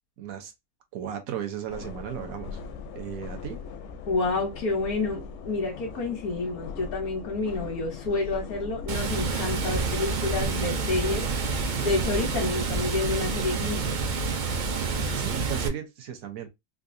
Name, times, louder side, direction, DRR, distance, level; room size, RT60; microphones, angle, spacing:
voice 1, 0.2-0.5 0.9-2.6 2.9-3.6 15.2-16.5, right 9 dB, 75° right, 1.2 m, -35 dB
sound 1, 1.7-9.2, left 5 dB, 65° left, 0.7 m, -40 dB
voice 2, 4.1-14.1, left 3 dB, 90° left, 1.4 m, -29 dB
Water, 8.9-15.7, right 4 dB, 60° right, 0.5 m, -28 dB
3.8 x 2.4 x 2.5 m
omnidirectional pair, 1.5 m